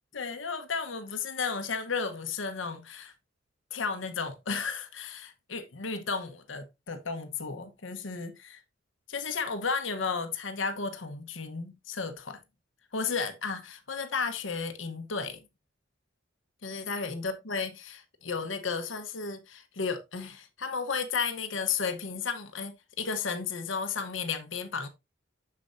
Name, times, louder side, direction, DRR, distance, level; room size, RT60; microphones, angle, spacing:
voice 1, 0.1-3.1 3.7-8.6 9.1-12.4 12.9-15.4 16.6-24.9, left 5 dB, 75° left, 1.0 m, -33 dB
6.9 x 6.8 x 2.6 m
head